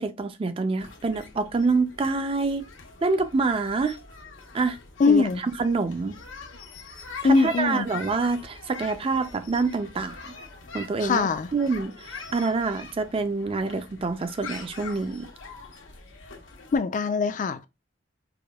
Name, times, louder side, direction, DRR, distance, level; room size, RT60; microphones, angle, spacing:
voice 1, 0.0-2.6 3.0-4.0 4.5-4.8 5.1-6.1 7.2-10.3 10.7-15.3, right 3 dB, 30° right, 0.4 m, -26 dB
sound 1, 0.8-16.8, left 4 dB, 90° left, 0.9 m, -43 dB
voice 2, 5.0-5.4 7.2-7.9 11.0-11.5 16.7-17.7, left 4 dB, 40° left, 0.4 m, -22 dB
4.8 x 2.2 x 2.3 m
head